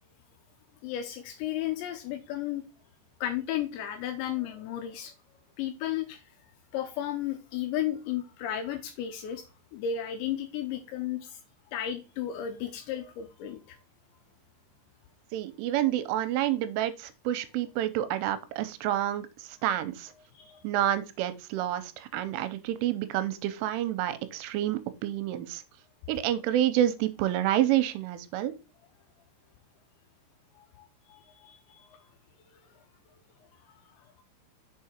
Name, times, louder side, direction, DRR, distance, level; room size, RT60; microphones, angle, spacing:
voice 1, 0.8-2.6 3.2-5.1 5.6-6.2 6.7-9.4 9.7-11.4 11.7-13.8 20.3-20.6 30.6-32.0, left 10 dB, 80° left, 2.8 m, -34 dB
voice 2, 15.3-20.1 20.6-25.6 26.1-28.5, right 12 dB, 85° right, 3.2 m, -28 dB
6.8 x 4.7 x 4.4 m
omnidirectional pair, 5.7 m